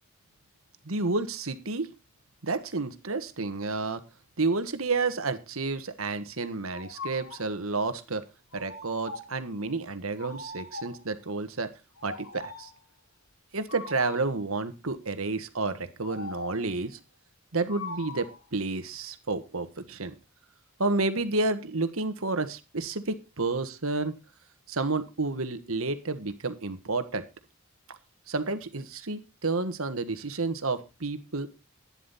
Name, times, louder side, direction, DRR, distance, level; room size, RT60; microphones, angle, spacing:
voice 1, 0.8-1.9 2.4-4.0 4.4-8.2 8.5-11.7 12.0-12.7 13.5-17.0 17.5-18.2 18.5-20.1 20.8-24.1 24.7-27.2 27.9-28.0 28.3-31.5, right 3 dB, 75° right, 10 dB, 1.4 m, -30 dB
sound 1, 6.7-7.5 8.5-9.4 10.2-11.1 12.0-12.8 13.7-14.4 16.0-16.7 17.7-18.5, left 3 dB, 85° left, 3.3 m, -41 dB
11.5 x 10.0 x 4.1 m, 0.28 s
head